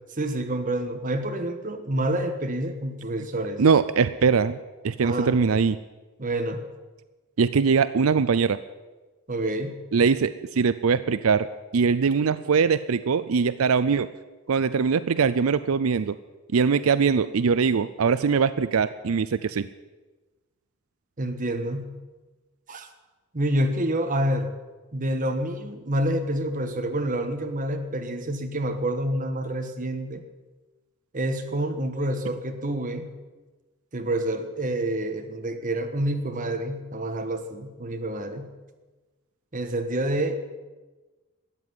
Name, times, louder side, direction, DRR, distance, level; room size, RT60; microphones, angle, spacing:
voice 1, 0.1-3.6 5.0-5.3 6.2-6.6 9.3-9.8 21.2-22.0 22.7-22.9 23.3-24.5 24.9-30.2 31.1-33.1 33.9-38.5 39.5-40.5, right 1 dB, 40° right, 6 dB, 1.5 m, -28 dB
voice 2, 3.6-4.6 4.8-5.8 7.4-8.6 9.9-14.1 14.5-16.2 16.5-19.7, right 5 dB, 85° right, 14 dB, 0.5 m, -22 dB
13.5 x 9.3 x 9.7 m, 1.2 s
head